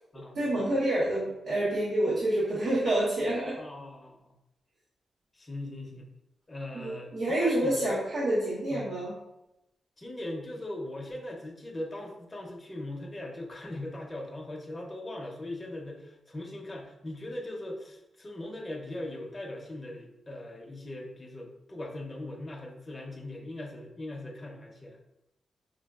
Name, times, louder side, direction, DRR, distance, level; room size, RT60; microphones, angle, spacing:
voice 1, 0.3-3.6 6.7-9.1, right 1 dB, 85° right, -8 dB, 0.9 m, -28 dB
voice 2, 3.6-4.2 5.3-6.1 6.5-7.9 8.7-8.9 10.0-25.0, left 1 dB, 20° left, -1 dB, 0.6 m, -40 dB
5.2 x 2.3 x 2.3 m, 0.89 s
wide cardioid pair, 155°, 0 cm